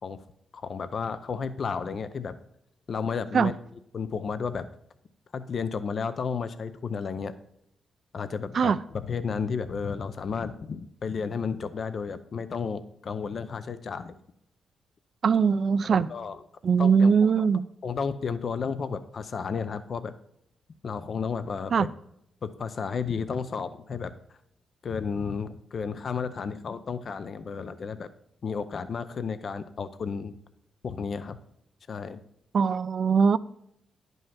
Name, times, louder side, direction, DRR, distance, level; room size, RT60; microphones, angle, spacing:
voice 1, 0.5-2.4 2.9-3.5 3.9-4.7 5.3-7.3 8.1-14.1 15.9-16.4 16.8-17.5 17.8-20.1 20.8-21.9 22.4-24.1 24.8-28.1 28.4-30.3 30.8-31.4 31.9-32.2, left 5 dB, 45° left, 0.5 m, -32 dB
voice 2, 15.2-16.1 16.6-17.7 21.7-21.9 32.5-33.4, right 6 dB, 50° right, 0.4 m, -21 dB
11.0 x 5.4 x 5.7 m
wide cardioid pair, 140°, 0 cm